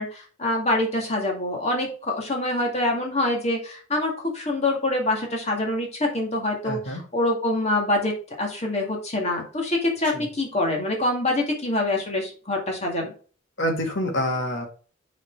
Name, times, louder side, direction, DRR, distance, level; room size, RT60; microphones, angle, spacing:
voice 1, 0.0-13.1, left 1 dB, 30° left, 0 dB, 2.2 m, -25 dB
voice 2, 6.6-7.0 10.1-10.3 13.6-14.7, equal, 55° left, 1 dB, 2.3 m, -26 dB
7.4 x 4.3 x 4.6 m, 0.38 s
head